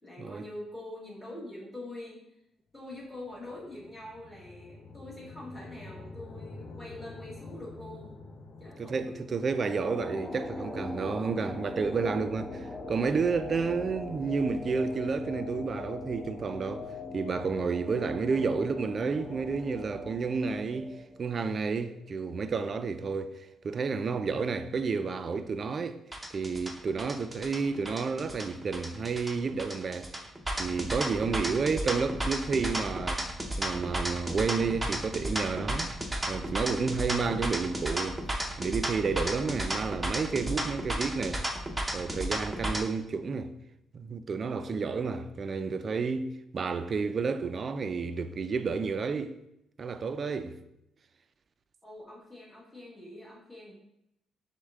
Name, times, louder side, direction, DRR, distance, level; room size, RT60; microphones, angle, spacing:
voice 1, 0.0-2.2 2.7-8.2 8.6-9.2 51.8-53.7, left 1 dB, 5° left, 1.6 m, -44 dB
sound 1, 2.8-13.1, left 3 dB, 65° left, 0.6 m, -49 dB
voice 2, 8.8-16.9 17.1-26.0 26.3-30.2 30.6-33.3 33.6-35.9 36.3-38.2 38.6-41.5 41.9-43.6 43.9-49.3 49.8-50.6, right 5 dB, 45° right, 0.3 m, -31 dB
sound 2, 9.4-22.0, left 2 dB, 35° left, 1.0 m, -41 dB
sound 3, 26.1-42.8, right 1 dB, 10° right, 0.7 m, -33 dB
6.2 x 2.2 x 3.5 m
cardioid pair, 90°, 0 cm